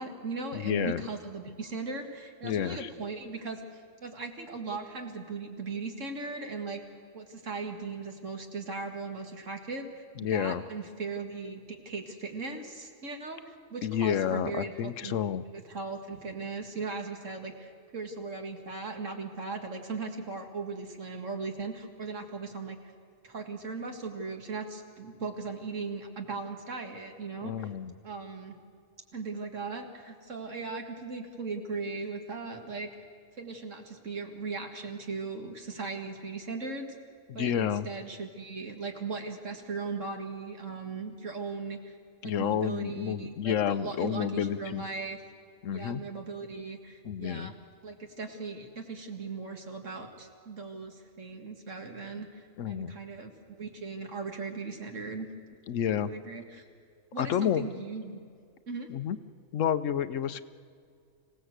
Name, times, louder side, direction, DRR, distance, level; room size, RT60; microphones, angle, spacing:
voice 1, 0.0-6.8 7.1-22.8 23.2-27.7 28.0-28.6 29.1-32.9 33.4-36.9 37.3-42.0 42.2-45.2 45.7-47.5 47.8-55.3 55.8-56.6 57.1-58.2 58.7-58.9, right 4 dB, 70° right, 3 dB, 2.2 m, -38 dB
voice 2, 0.5-1.0 2.4-2.9 10.2-10.6 13.8-15.4 27.4-28.0 37.3-37.9 42.2-44.8 45.6-46.0 47.0-47.5 52.6-52.9 55.7-56.1 57.2-57.7 58.9-59.2 59.5-60.4, left 9 dB, 75° left, 14 dB, 1.1 m, -30 dB
26.0 x 17.0 x 8.1 m, 2.3 s
omnidirectional pair, 1.4 m